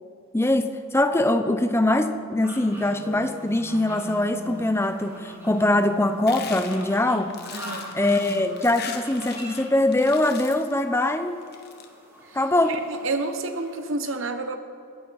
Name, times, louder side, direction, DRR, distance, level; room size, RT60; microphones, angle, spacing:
voice 1, 0.3-7.3 7.9-11.4 12.3-12.8, left 1 dB, 10° left, 9 dB, 0.7 m, -22 dB
sound 1, 2.4-14.0, equal, 10° right, 2.7 m, -45 dB
sound 2, 2.6-8.7, left 1 dB, 85° left, 4.0 m, -43 dB
sound 3, 6.3-9.6 9.9-10.7 11.4-11.8, left 7 dB, 45° left, 1.4 m, -39 dB
voice 2, 7.5-7.9 12.7-14.6, right 3 dB, 60° right, 7 dB, 1.3 m, -29 dB
20.5 x 15.0 x 4.8 m, 2.5 s
head